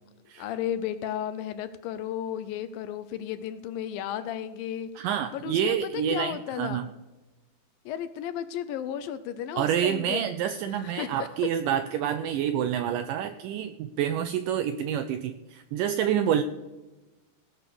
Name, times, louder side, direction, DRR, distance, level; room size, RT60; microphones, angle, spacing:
voice 1, 0.4-4.9 5.3-6.8 7.9-10.2 10.8-11.3, left 10 dB, 80° left, 12 dB, 2.2 m, -33 dB
voice 2, 5.0-6.9 9.6-16.4, right 9 dB, 85° right, 10 dB, 1.9 m, -28 dB
17.0 x 6.6 x 6.8 m, 1.1 s
omnidirectional pair, 4.4 m